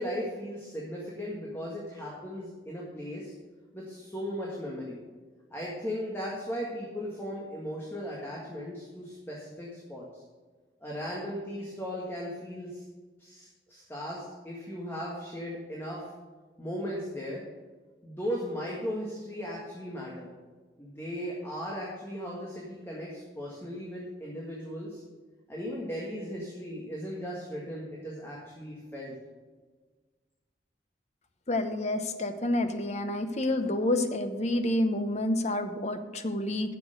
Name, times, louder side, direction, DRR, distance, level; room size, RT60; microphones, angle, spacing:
voice 1, 0.0-3.3 3.7-5.0 5.5-10.2 10.8-12.8 13.2-16.0 16.6-17.4 18.0-20.3 20.8-25.0 25.5-29.1, equal, 15° left, -4 dB, 1.8 m, -37 dB
voice 2, 31.5-36.7, left 1 dB, 40° left, 8 dB, 0.9 m, -29 dB
10.0 x 6.9 x 6.7 m, 1.4 s
head